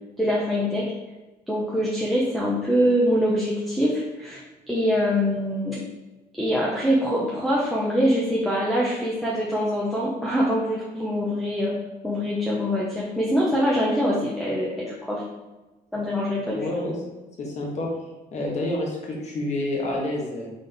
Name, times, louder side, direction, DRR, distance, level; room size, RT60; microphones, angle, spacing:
voice 1, 0.2-0.9 1.5-4.4 4.7-5.8 6.4-11.7 12.0-15.2 15.9-16.7, equal, ahead, -6 dB, 0.8 m, -24 dB
voice 2, 16.5-17.0 17.4-17.9 18.3-20.5, left 1 dB, 45° left, -2 dB, 1.3 m, -28 dB
3.9 x 3.6 x 3.4 m, 1.1 s
cardioid pair, 110°, 17 cm